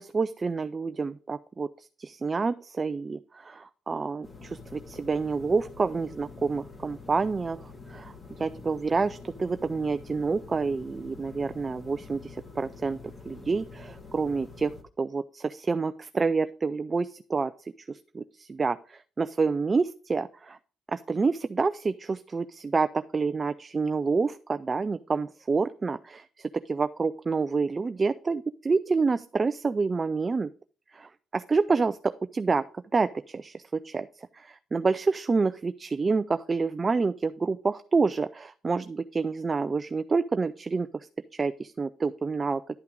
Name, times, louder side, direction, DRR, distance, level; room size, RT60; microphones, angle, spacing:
voice 1, 0.0-13.0 13.3-14.7 15.0-17.5 17.9-20.6 20.9-30.5 30.9-32.6 32.9-42.6, right 4 dB, 30° right, 12 dB, 0.3 m, -28 dB
sound 1, 4.2-14.8, left 4 dB, 25° left, 1.7 m, -46 dB
10.5 x 5.7 x 3.8 m, 0.41 s
cardioid pair, 90°, 0 cm